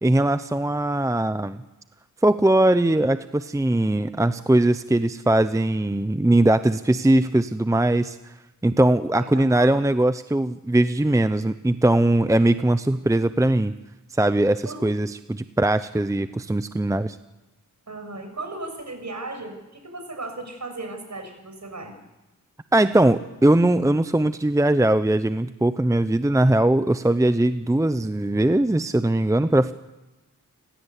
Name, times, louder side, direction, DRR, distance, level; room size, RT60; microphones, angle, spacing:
voice 1, 0.0-1.6 2.2-8.2 8.6-13.7 14.1-17.2 22.7-29.7, right 1 dB, 10° right, 12 dB, 0.7 m, -20 dB
voice 2, 9.2-9.7 14.6-14.8 17.9-21.9, right 2 dB, 55° right, 5 dB, 6.4 m, -36 dB
29.5 x 16.0 x 8.3 m, 1.0 s
wide cardioid pair, 75°, 34 cm